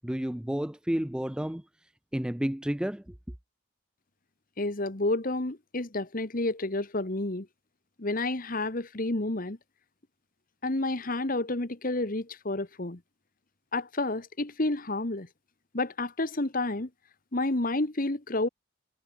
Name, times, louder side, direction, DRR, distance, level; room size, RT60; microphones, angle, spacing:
voice 1, 0.0-1.6 2.1-3.1, equal, 5° right, 0.3 m, -31 dB
voice 2, 4.6-7.5 8.0-9.6 10.6-13.0 13.7-15.3 15.7-16.9 17.3-18.5, left 2 dB, 40° left, 1.4 m, -30 dB
head